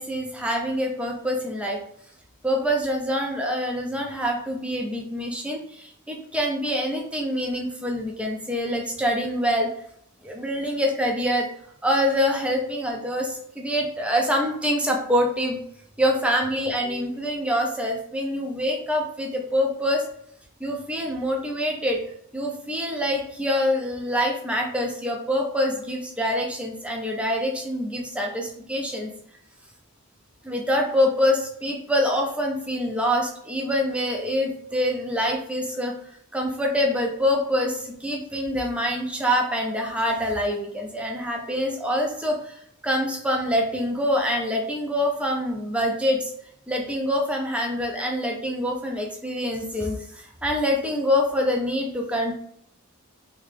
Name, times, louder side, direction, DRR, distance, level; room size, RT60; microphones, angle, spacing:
voice 1, 0.0-1.8 2.4-9.7 10.2-11.5 11.8-15.6 16.0-20.1 20.6-22.0 22.3-29.1 30.4-35.9 36.3-46.3 46.7-52.4, equal, 5° right, 0 dB, 0.5 m, -25 dB
3.3 x 2.9 x 3.3 m, 0.70 s
head